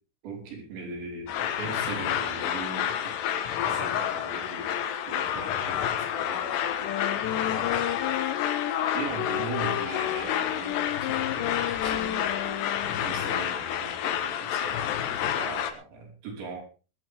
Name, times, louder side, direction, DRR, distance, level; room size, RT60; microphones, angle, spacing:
voice 1, 0.2-8.5 8.9-15.1 15.4-16.6, right 4 dB, 85° right, 1 dB, 7.5 m, -40 dB
sound 1, 1.3-15.7, left 9 dB, 75° left, 3.4 m, -29 dB
Wind instrument woodwind instrument, 6.7-13.2, left 13 dB, 90° left, 3.1 m, -33 dB
20.0 x 12.5 x 3.6 m, 0.35 s
omnidirectional pair, 5.0 m